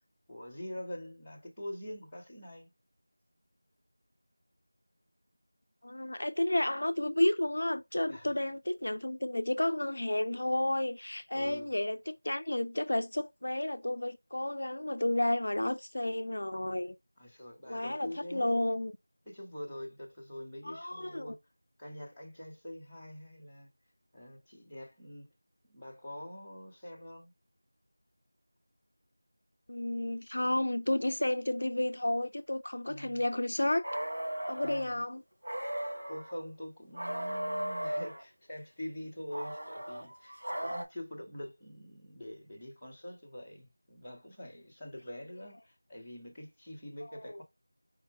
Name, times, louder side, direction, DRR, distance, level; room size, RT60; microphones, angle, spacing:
voice 1, 0.3-2.7 8.1-8.3 11.3-11.7 17.2-18.7 19.2-21.4 21.8-23.7 24.1-25.3 25.6-27.3 32.9-33.3 34.6-35.0 36.1-47.4, left 1 dB, 5° left, 0.8 m, -45 dB
voice 2, 5.8-16.9 17.7-18.9 20.6-21.3 29.7-33.8 34.5-35.2 47.2-47.4, left 1 dB, 55° left, 0.4 m, -31 dB
sound 1, 33.8-34.8 35.4-36.3 36.9-38.2 39.3-40.8, right 1 dB, 75° right, 2.0 m, -36 dB
4.7 x 2.1 x 4.6 m
figure-of-eight pair, 175°, 0 cm